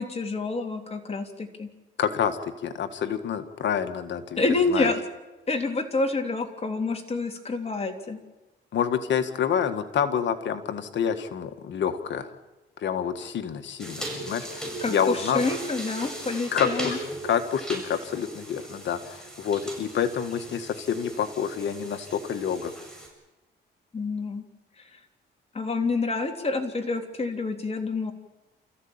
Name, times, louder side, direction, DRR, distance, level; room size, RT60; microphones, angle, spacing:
voice 1, 0.0-1.7 4.4-5.0 5.5-8.2 14.8-17.0 23.9-24.4 25.5-28.1, left 3 dB, 30° left, 3 dB, 3.4 m, -28 dB
voice 2, 2.0-4.4 4.7-4.9 8.7-12.3 12.8-15.4 16.5-17.0 17.2-22.7, left 8 dB, 65° left, 8 dB, 1.9 m, -28 dB
sound 1, 13.8-23.1, right 1 dB, 5° left, 7.9 m, -38 dB
29.5 x 15.0 x 8.9 m, 1.1 s
cardioid pair, 90°, 20 cm